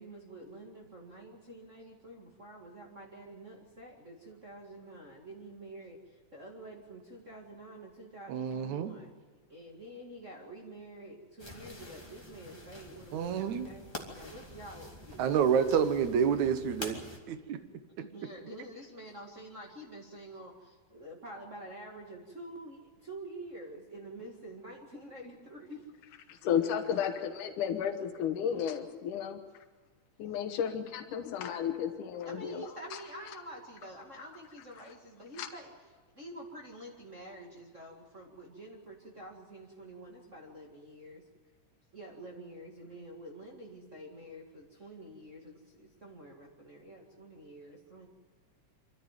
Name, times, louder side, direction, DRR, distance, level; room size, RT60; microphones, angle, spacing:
voice 1, 0.0-6.0 6.3-9.1 9.5-15.2 18.0-25.9 30.5-30.6 32.3-35.7 36.2-41.2 41.9-48.1, right 1 dB, 25° right, -2 dB, 2.1 m, -48 dB
voice 2, 8.3-8.9 13.1-13.7 15.2-17.6 18.0-18.1, right 7 dB, 70° right, 10 dB, 2.5 m, -29 dB
sound 1, 11.4-17.2, left 1 dB, 10° left, 1.9 m, -47 dB
voice 3, 26.3-29.4 30.2-33.0 35.4-35.5, left 8 dB, 85° left, 5 dB, 2.7 m, -33 dB
25.0 x 14.0 x 9.2 m, 1.4 s
omnidirectional pair, 3.6 m